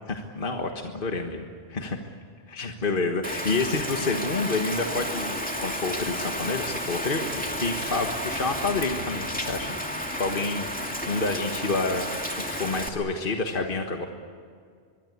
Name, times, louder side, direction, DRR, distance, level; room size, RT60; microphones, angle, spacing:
voice 1, 0.1-2.0 2.5-9.7 10.2-14.1, left 3 dB, 55° left, 4 dB, 1.7 m, -29 dB
Rain, 3.2-12.9, equal, 5° left, 2.5 m, -32 dB
25.0 x 22.0 x 8.4 m, 2.2 s
omnidirectional pair, 1.1 m